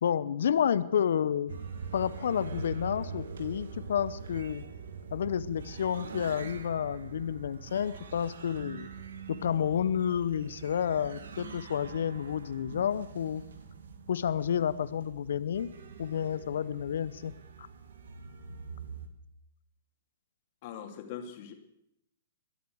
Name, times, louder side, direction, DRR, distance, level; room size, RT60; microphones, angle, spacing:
voice 1, 0.0-1.5 1.9-4.6 5.1-8.9 9.3-13.4 14.1-15.7 16.0-17.3 17.6-17.7, left 8 dB, 70° left, 15 dB, 0.8 m, -30 dB
sound 1, 1.5-19.1, right 5 dB, 70° right, 1.7 m, -44 dB
voice 2, 20.6-21.5, left 8 dB, 50° left, 4 dB, 2.6 m, -41 dB
22.0 x 8.3 x 6.3 m, 0.80 s
hypercardioid pair, 115°, 0 cm